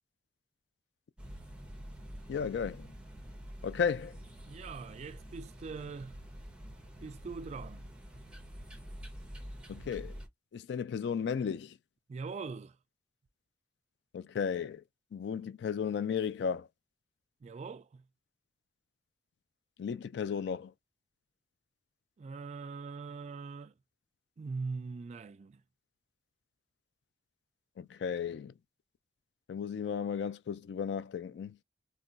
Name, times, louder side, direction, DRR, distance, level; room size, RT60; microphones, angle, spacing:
sound 1, 1.2-10.3, equal, 5° right, 0.6 m, -47 dB
voice 1, 2.3-2.9 3.6-4.2 9.7-10.1 10.5-11.8 14.1-14.8 15.1-16.7 19.8-20.7 27.8-28.5 29.5-31.6, left 6 dB, 65° left, 0.3 m, -34 dB
voice 2, 4.4-6.2 7.0-7.9 12.1-12.8 17.4-18.0 22.2-23.7 24.4-25.6, right 4 dB, 40° right, 0.3 m, -42 dB
2.2 x 2.2 x 3.8 m
head